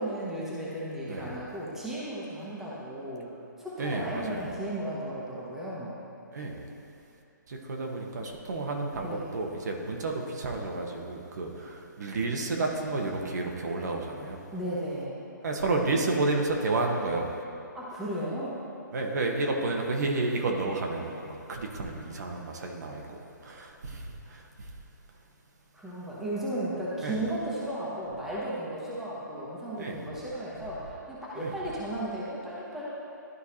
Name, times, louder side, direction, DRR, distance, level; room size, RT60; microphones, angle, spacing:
voice 1, 0.0-3.3 3.6-5.9 9.0-9.3 14.5-15.2 17.7-18.6 25.7-32.8, right 1 dB, 5° right, -8 dB, 1.1 m, -35 dB
voice 2, 3.8-4.5 6.3-6.6 7.5-14.4 15.4-17.3 18.9-24.7 27.0-27.2 29.8-30.1 31.4-31.5, right 2 dB, 60° right, 1 dB, 1.1 m, -31 dB
12.5 x 4.6 x 2.8 m, 2.6 s
hypercardioid pair, 155°, 10 cm